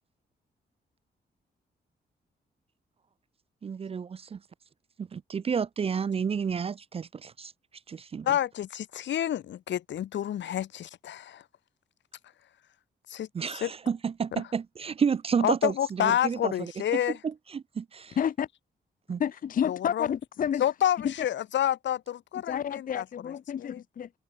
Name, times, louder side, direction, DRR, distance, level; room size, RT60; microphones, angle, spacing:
voice 1, 3.6-4.4 5.0-7.5 7.9-8.3 13.3-16.7 17.2-18.2 19.1-19.2, right 6 dB, 35° right, 0.4 m, -30 dB
voice 2, 8.2-11.4 13.1-13.7 14.3-14.4 15.4-17.2 19.7-20.1 20.6-23.0 23.6-23.8, left 11 dB, 85° left, 1.5 m, -29 dB
voice 3, 18.2-18.5 19.2-20.6 21.0-21.1 22.5-24.1, left 8 dB, 50° left, 0.6 m, -30 dB
open air
cardioid pair, 100°, 18 cm